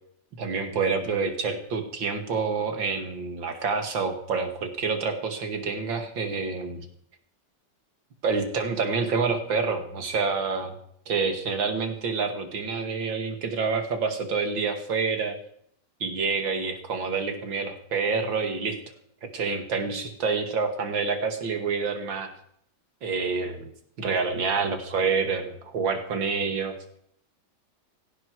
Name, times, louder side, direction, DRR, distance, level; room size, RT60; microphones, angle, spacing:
voice 1, 0.4-6.9 8.2-10.7 11.1-15.4 16.0-18.8 19.2-22.3 23.0-23.7 24.0-26.7, right 4 dB, 90° right, 6 dB, 2.9 m, -27 dB
17.5 x 17.0 x 4.8 m, 0.66 s
omnidirectional pair, 2.0 m